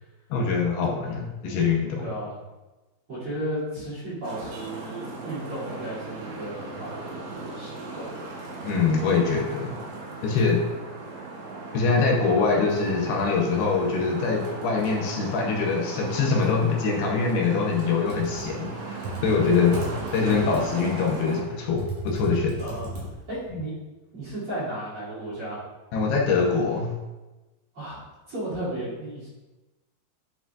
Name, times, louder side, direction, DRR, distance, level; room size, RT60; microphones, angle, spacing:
voice 1, 0.3-2.1 8.6-9.8 10.2-10.6 11.7-19.8 20.1-22.6 25.9-26.9, left 4 dB, 80° left, -1 dB, 2.6 m, -24 dB
voice 2, 2.0-2.4 3.1-7.2 7.5-8.1 22.6-22.9 23.3-23.7 24.1-25.6 27.7-28.0 28.3-29.3, right 1 dB, 40° right, -10 dB, 2.7 m, -34 dB
Traffic noise roadway noise, 4.2-21.4, right 2 dB, 85° right, 3.6 m, -37 dB
Computer keyboard, 17.9-23.5, right 2 dB, 55° right, 2.9 m, -35 dB
11.0 x 4.7 x 2.3 m, 1.1 s
omnidirectional pair, 4.9 m